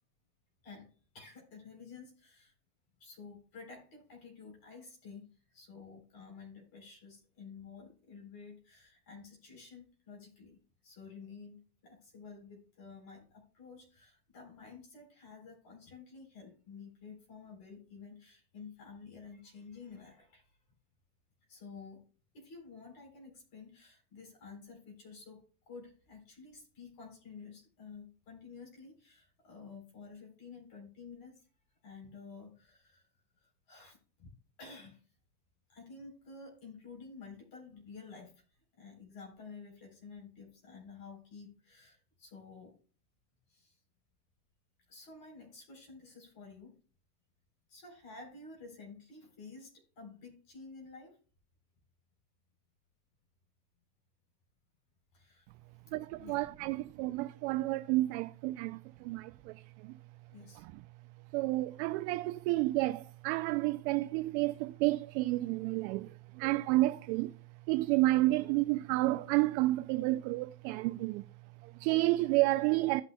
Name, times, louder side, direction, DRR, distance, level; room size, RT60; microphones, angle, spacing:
voice 1, 1.1-2.5 3.0-20.6 21.5-22.0 22.3-31.5 31.8-33.1 33.4-34.3 34.6-35.0 35.7-42.8 43.5-43.8 44.9-46.7 47.7-51.2 55.1-55.5 55.9-56.5 60.3-60.6, left 4 dB, 45° left, 3.8 m, -51 dB
voice 2, 55.9-60.0 61.3-67.3 67.7-71.2 71.6-73.0, right 19 dB, 45° right, 0.5 m, -30 dB
15.5 x 5.8 x 2.3 m
supercardioid pair, 125°, 49 cm